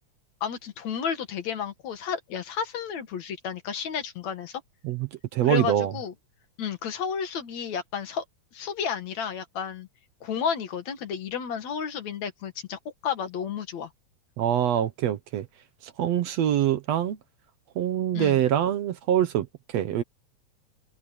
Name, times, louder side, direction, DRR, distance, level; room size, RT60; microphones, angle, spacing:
voice 1, 0.4-4.6 5.4-6.1 6.6-8.2 8.5-9.9 10.2-13.9 18.1-18.4, left 7 dB, 70° left, 3.1 m, -32 dB
voice 2, 4.8-5.9 14.4-15.5 15.8-17.2 17.8-20.0, right 11 dB, 65° right, 2.0 m, -25 dB
omnidirectional pair, 3.4 m